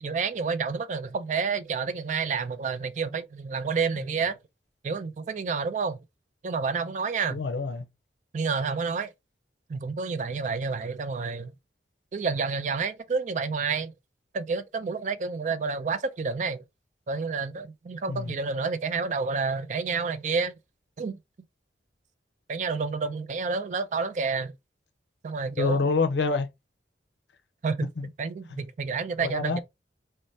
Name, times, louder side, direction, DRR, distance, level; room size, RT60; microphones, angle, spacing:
voice 1, 0.0-4.4 4.8-6.0 6.4-7.4 8.3-9.1 9.7-11.5 12.1-13.9 14.3-16.6 17.1-20.5 21.0-21.2 22.5-24.5 25.2-25.8 27.6-29.6, right 5 dB, 45° right, 0.3 m, -29 dB
voice 2, 7.3-7.9 18.1-18.4 25.6-26.5 28.0-28.1 28.5-28.6 29.2-29.6, left 3 dB, 85° left, 0.5 m, -27 dB
2.6 x 2.1 x 3.2 m
head